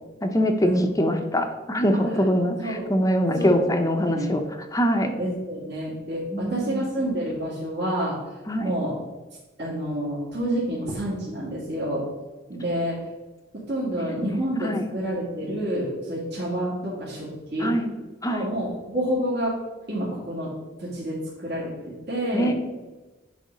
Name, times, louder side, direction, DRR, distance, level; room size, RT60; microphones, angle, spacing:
voice 1, 0.2-0.7 1.0-4.4 4.7-5.1 6.3-6.9 8.5-8.7 14.2-14.9 17.6-17.9 18.2-18.5 22.3-22.5, equal, 20° left, 5 dB, 0.8 m, -23 dB
voice 2, 1.9-2.2 2.6-2.9 3.4-3.5 4.1-4.3 5.2-8.2 8.6-9.0 9.6-12.1 12.5-13.0 13.5-17.7 18.3-19.6 19.9-20.5 20.8-22.5, right 1 dB, 60° right, -8 dB, 2.5 m, -28 dB
10.5 x 3.5 x 5.3 m, 1.1 s
head